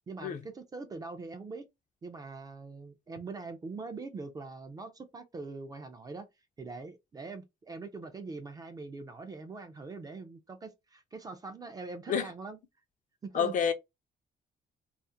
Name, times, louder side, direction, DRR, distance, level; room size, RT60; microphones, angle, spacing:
voice 1, 0.1-1.7 2.0-6.3 6.6-12.6 13.2-13.5, right 3 dB, 20° right, 0.4 m, -43 dB
voice 2, 13.3-13.7, left 7 dB, 45° left, 0.4 m, -28 dB
2.4 x 2.4 x 2.6 m
cardioid pair, 175°, 18 cm